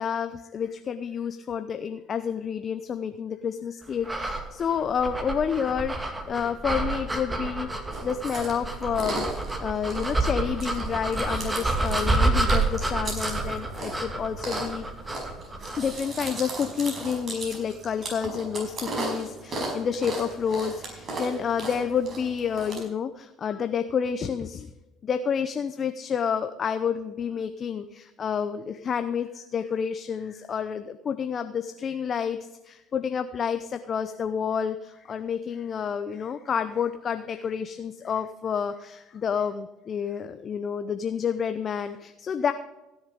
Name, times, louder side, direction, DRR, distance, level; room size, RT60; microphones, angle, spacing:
voice 1, 0.0-7.7 8.0-14.9 15.8-24.7 25.0-42.5, left 7 dB, 45° left, 10 dB, 0.7 m, -29 dB
sound 1, 4.0-15.9, right 2 dB, 15° right, 2.2 m, -29 dB
Chewing mastication, 7.9-22.8, right 2 dB, 40° right, 5.3 m, -36 dB
sound 2, 12.0-17.6, right 1 dB, 65° right, 2.6 m, -40 dB
16.5 x 7.2 x 5.2 m, 1.0 s
hypercardioid pair, 65°, 0 cm